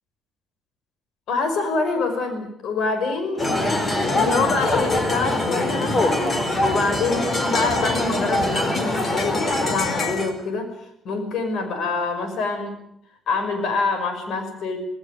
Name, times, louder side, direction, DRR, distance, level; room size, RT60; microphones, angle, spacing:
voice 1, 1.3-3.4 4.1-6.3 6.6-10.7 11.0-12.7 13.3-14.8, left 4 dB, 75° left, 8 dB, 5.7 m, -25 dB
sound 1, 3.4-10.3, left 1 dB, 35° left, 4.4 m, -23 dB
19.0 x 17.5 x 9.3 m, 0.74 s
cardioid pair, 90°, 0 cm